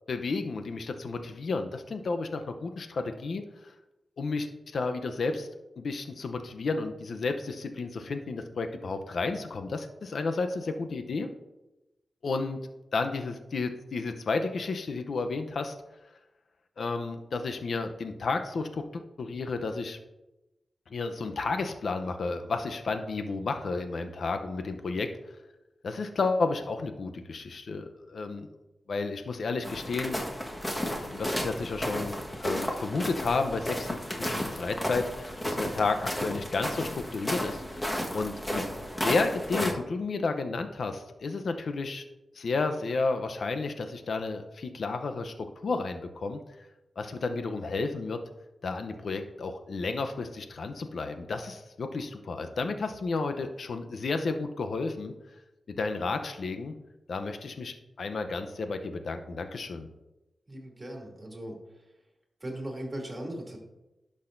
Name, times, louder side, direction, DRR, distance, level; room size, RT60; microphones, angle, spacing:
voice 1, 0.1-3.7 4.2-4.5 4.7-5.5 5.8-11.3 12.2-12.6 12.9-15.7 16.8-20.0 20.9-25.1 25.8-28.5 28.9-30.2 30.9-37.8 38.1-38.6 39.0-42.0 42.4-45.3 45.6-46.4 47.0-48.2 48.6-55.1 55.8-56.7 57.1-59.9, left 3 dB, 70° left, 7 dB, 0.6 m, -32 dB
sound 1, 29.6-39.7, equal, 15° left, 1.4 m, -33 dB
voice 2, 60.5-61.6 62.4-63.6, right 1 dB, 25° right, -1 dB, 2.6 m, -38 dB
11.0 x 6.4 x 2.6 m, 0.99 s
cardioid pair, 60°, 0 cm